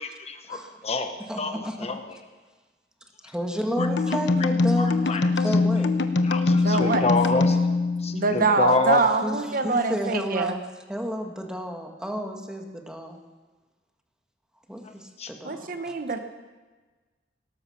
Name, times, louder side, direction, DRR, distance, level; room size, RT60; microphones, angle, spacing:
voice 1, 0.0-2.2 3.8-3.9 4.8-5.3 6.2-7.6 8.0-9.0 15.2-15.3, left 3 dB, 35° left, 7 dB, 1.1 m, -27 dB
voice 2, 1.3-1.9 3.2-5.0 5.2-5.9 9.2-9.4 9.6-10.6 10.9-13.2 14.7-15.9, equal, 5° right, 2 dB, 1.7 m, -31 dB
sound 1, 3.8-8.6, left 3 dB, 80° left, 0.9 m, -23 dB
voice 3, 6.5-7.0 8.1-10.5 15.4-16.2, right 3 dB, 50° right, 8 dB, 1.1 m, -24 dB
18.0 x 13.0 x 5.9 m, 1.3 s
head